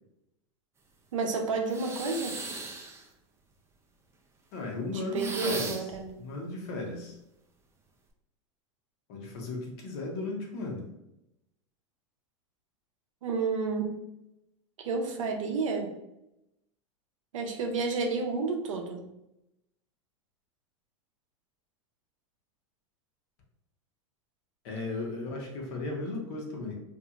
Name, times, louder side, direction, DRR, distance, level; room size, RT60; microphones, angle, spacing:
voice 1, 1.1-2.4 4.9-6.2 13.2-13.9 14.8-15.9 17.3-19.0, right 4 dB, 80° right, 3 dB, 0.6 m, -31 dB
sound 1, 1.7-3.1 5.2-6.0, right 3 dB, 15° right, 0.4 m, -37 dB
voice 2, 4.5-5.9 6.2-7.2 9.1-10.9 24.6-26.7, left 2 dB, 60° left, 0 dB, 1.0 m, -35 dB
2.8 x 2.6 x 2.4 m, 0.86 s
hypercardioid pair, 105°, 16 cm